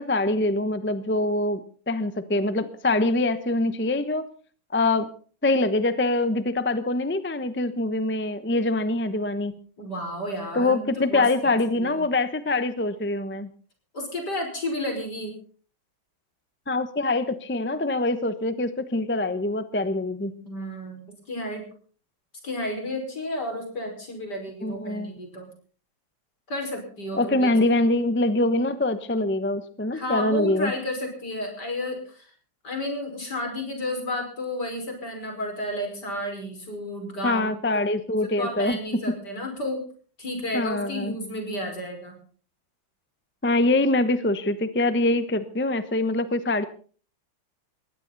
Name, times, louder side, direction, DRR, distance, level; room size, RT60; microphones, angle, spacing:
voice 1, 0.0-4.3 4.7-5.1 5.4-9.5 10.5-13.5 16.7-20.3 24.6-25.1 27.1-30.7 37.2-38.8 40.5-41.1 43.4-46.6, left 2 dB, 15° left, 11 dB, 0.4 m, -24 dB
voice 2, 9.8-11.5 11.7-12.0 13.9-15.3 20.4-21.0 21.3-21.7 22.4-25.5 26.5-27.6 29.9-32.3 32.6-37.8 38.1-39.8 40.2-42.2, left 1 dB, 50° left, 3 dB, 6.0 m, -32 dB
20.5 x 16.0 x 4.1 m, 0.43 s
omnidirectional pair, 2.3 m